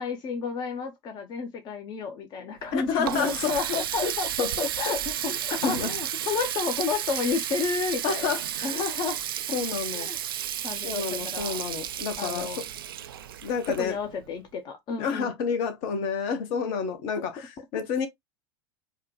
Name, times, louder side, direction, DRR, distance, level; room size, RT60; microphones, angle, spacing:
voice 1, 0.0-4.3 4.6-9.2 9.9-10.2 10.6-11.6 12.2-12.6 13.8-15.3, left 5 dB, 35° left, 0.8 m, -31 dB
Water tap faucet, 2.6-14.3, right 11 dB, 70° right, 0.4 m, -33 dB
voice 2, 2.7-4.1 4.4-5.0 5.5-5.9 8.0-8.8 9.5-10.1 10.8-12.6 13.4-14.0 15.0-18.1, left 6 dB, 50° left, 1.1 m, -30 dB
4.8 x 2.2 x 2.9 m
figure-of-eight pair, 80°, 12 cm